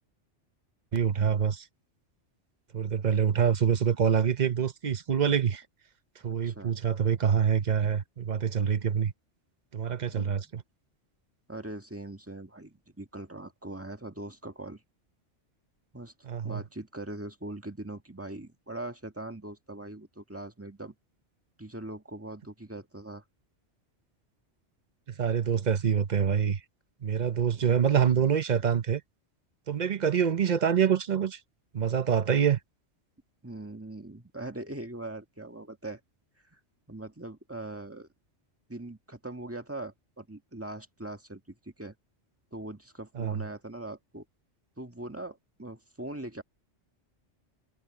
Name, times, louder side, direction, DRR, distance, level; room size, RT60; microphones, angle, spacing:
voice 1, 0.9-1.6 2.7-5.6 6.2-9.1 9.7-10.6 16.3-16.6 25.2-26.6 27.0-29.0 29.7-31.4 31.7-32.6 43.2-43.4, right 7 dB, 40° right, 0.9 m, -26 dB
voice 2, 6.3-6.7 10.0-10.3 11.5-14.8 15.9-16.1 16.4-20.9 21.6-23.2 33.4-36.0 36.5-36.6 36.9-38.1 38.7-41.9 42.5-44.2 44.8-46.4, right 2 dB, 10° right, 1.7 m, -41 dB
omnidirectional pair, 1.2 m